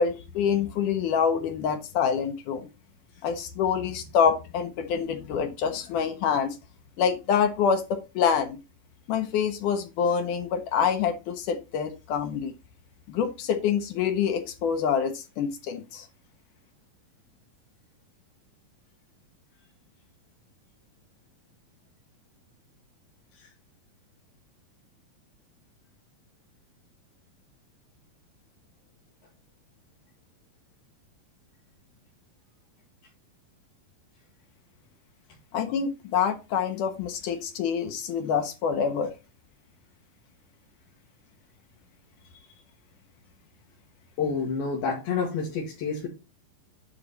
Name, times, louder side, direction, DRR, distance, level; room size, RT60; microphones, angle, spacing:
voice 1, 0.0-2.7 3.2-6.6 7.0-8.6 9.1-12.5 13.1-16.1 35.5-39.1, left 7 dB, 70° left, 7 dB, 2.2 m, -26 dB
voice 2, 44.2-46.1, left 5 dB, 90° left, -3 dB, 3.5 m, -29 dB
9.8 x 4.5 x 4.0 m, 0.28 s
omnidirectional pair, 4.1 m